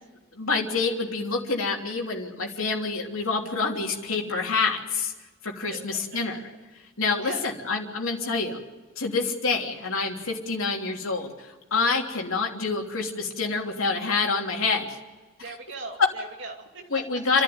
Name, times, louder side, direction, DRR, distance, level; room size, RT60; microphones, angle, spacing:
voice 1, 0.3-5.1 5.4-6.4 7.0-8.6 9.0-15.0 16.9-17.4, left 4 dB, 75° left, 0 dB, 3.2 m, -27 dB
voice 2, 15.4-17.1, right 3 dB, 55° right, 1 dB, 2.8 m, -39 dB
30.0 x 11.5 x 9.6 m, 1.2 s
head